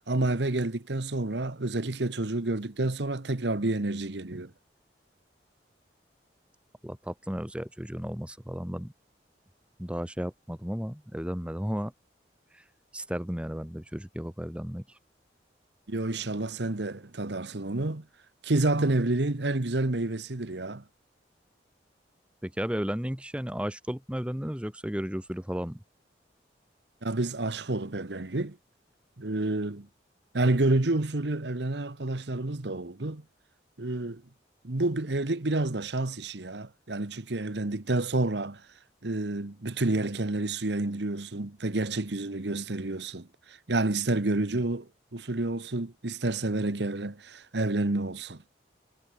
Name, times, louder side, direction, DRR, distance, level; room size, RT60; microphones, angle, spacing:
voice 1, 0.1-4.5 15.9-18.1 18.4-20.8 27.0-28.6 29.2-29.9 30.3-33.2 33.8-34.2 34.6-38.6 39.0-48.4, right 2 dB, 70° right, 1.2 m, -29 dB
voice 2, 6.8-8.9 9.8-11.9 12.5-12.6 12.9-15.0 22.4-25.8, equal, 5° right, 1.1 m, -34 dB
head